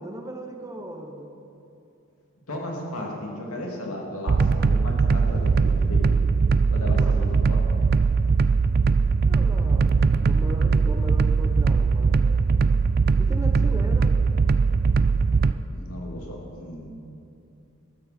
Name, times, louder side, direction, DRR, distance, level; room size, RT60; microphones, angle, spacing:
voice 1, 0.0-1.4 7.0-7.3 9.3-12.6 13.2-14.1, equal, 15° right, 4 dB, 0.9 m, -37 dB
voice 2, 2.5-6.1 6.7-7.6 15.7-16.9, left 1 dB, 85° left, -2 dB, 2.7 m, -35 dB
sound 1, 4.3-15.5, right 5 dB, 45° right, 0.3 m, -20 dB
14.0 x 13.0 x 4.4 m, 2.6 s
head